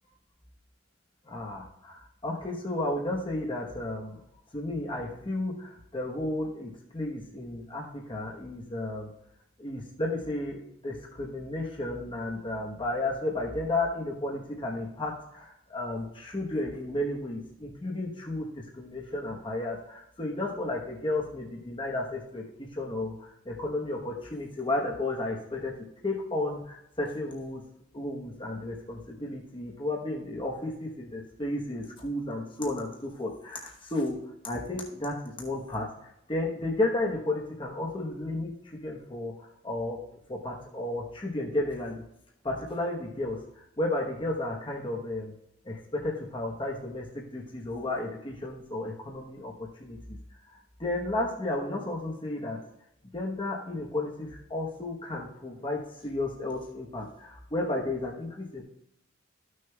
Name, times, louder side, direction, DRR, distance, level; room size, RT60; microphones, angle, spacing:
voice 1, 1.2-4.2 4.5-9.1 9.6-27.6 27.9-35.9 36.3-40.0 40.3-42.0 42.4-45.3 45.6-50.2 50.5-52.6 53.1-58.6, left 2 dB, 25° left, -1 dB, 1.0 m, -33 dB
14.0 x 6.4 x 2.3 m, 0.80 s
head